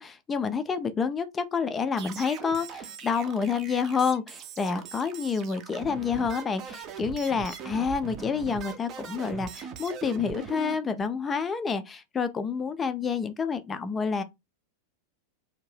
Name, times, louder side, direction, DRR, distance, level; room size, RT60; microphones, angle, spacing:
voice 1, 0.0-14.2, left 5 dB, 20° left, 0.4 m, -28 dB
sound 1, 2.0-10.8, right 7 dB, 35° right, 0.5 m, -41 dB
2.6 x 2.1 x 3.2 m
figure-of-eight pair, 90°, 0 cm